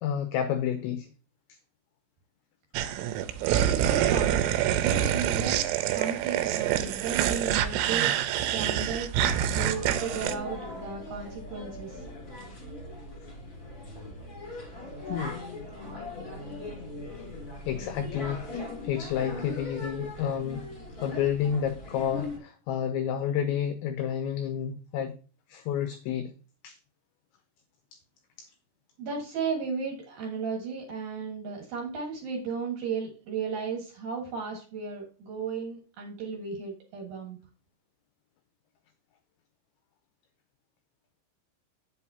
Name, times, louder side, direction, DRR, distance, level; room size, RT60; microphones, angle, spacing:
voice 1, 0.0-1.1 15.1-15.4 17.7-20.7 21.0-25.2 25.5-26.3 26.6-26.8 28.4-28.5, left 9 dB, 85° left, 8 dB, 2.6 m, -30 dB
sound 1, 2.8-10.4, right 11 dB, 85° right, 3.0 m, -26 dB
voice 2, 3.5-4.4 4.7-9.1 9.5-12.0 29.0-37.4, right 5 dB, 60° right, 0 dB, 2.7 m, -35 dB
sound 2, 9.5-22.4, left 2 dB, 35° left, 1.5 m, -39 dB
8.9 x 7.7 x 2.7 m, 0.36 s
omnidirectional pair, 5.9 m